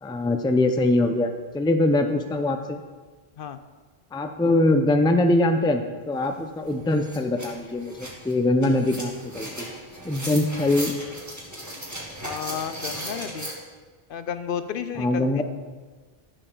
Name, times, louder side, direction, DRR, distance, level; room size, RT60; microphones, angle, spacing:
voice 1, 0.0-2.8 4.1-9.7 10.0-10.9 15.0-15.4, left 2 dB, 5° left, 6 dB, 0.4 m, -23 dB
sound 1, 6.2-6.3 6.6-13.5, equal, 15° right, 1.9 m, -37 dB
voice 2, 12.2-13.5 14.1-15.4, left 8 dB, 65° left, 11 dB, 0.7 m, -32 dB
14.5 x 6.6 x 3.9 m, 1.4 s
omnidirectional pair, 1.0 m